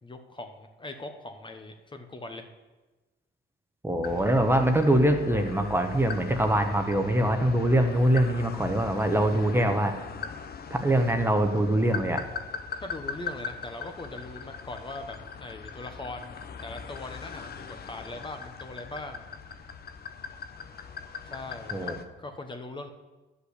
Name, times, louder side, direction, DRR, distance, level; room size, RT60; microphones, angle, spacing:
voice 1, 0.0-2.5 12.8-16.3 16.6-19.2 21.2-22.9, left 2 dB, 25° left, 5 dB, 1.0 m, -40 dB
voice 2, 3.8-9.9 10.7-12.2 21.7-21.9, right 1 dB, 10° right, 5 dB, 1.1 m, -23 dB
sound 1, 4.0-22.1, left 6 dB, 50° left, 0.8 m, -40 dB
10.0 x 5.6 x 8.1 m, 1.2 s
cardioid pair, 90°, 20 cm